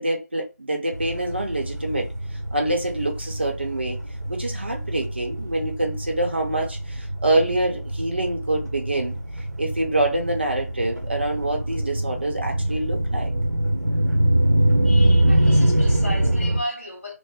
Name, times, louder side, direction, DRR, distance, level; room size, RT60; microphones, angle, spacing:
voice 1, 0.0-2.1 2.5-4.0 4.3-9.2 9.6-13.3, right 1 dB, 40° right, 0.7 m, -26 dB
sound 1, 0.9-16.6, right 1 dB, 70° right, 0.9 m, -24 dB
voice 2, 14.8-17.1, equal, 45° left, 1.8 m, -34 dB
3.3 x 2.1 x 3.5 m
figure-of-eight pair, 175°, 9 cm